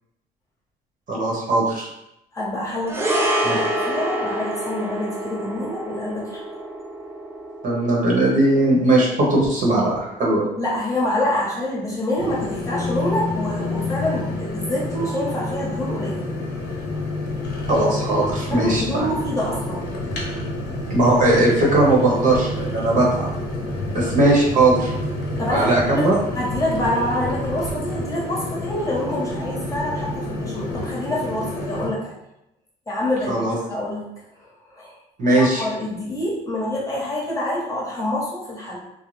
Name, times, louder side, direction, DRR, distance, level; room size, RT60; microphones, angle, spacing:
voice 1, 1.1-1.9 3.4-3.6 7.6-10.5 17.7-19.1 20.9-23.3 23.9-24.9 25.5-26.2 33.3-33.5 35.2-35.6, right 2 dB, 50° right, -3 dB, 0.9 m, -19 dB
voice 2, 2.3-6.4 10.6-16.2 18.1-19.8 25.4-26.1 26.3-32.2 32.9-33.4 33.7-34.0 34.4-34.9 35.2-38.8, left 1 dB, 20° left, -5 dB, 0.9 m, -26 dB
sound 1, 2.9-11.4 11.6-11.8, right 1 dB, 15° right, 0.4 m, -28 dB
sound 2, 12.2-31.9, left 1 dB, 80° left, 0.8 m, -28 dB
2.6 x 2.0 x 3.1 m, 0.86 s
cardioid pair, 110°, 17 cm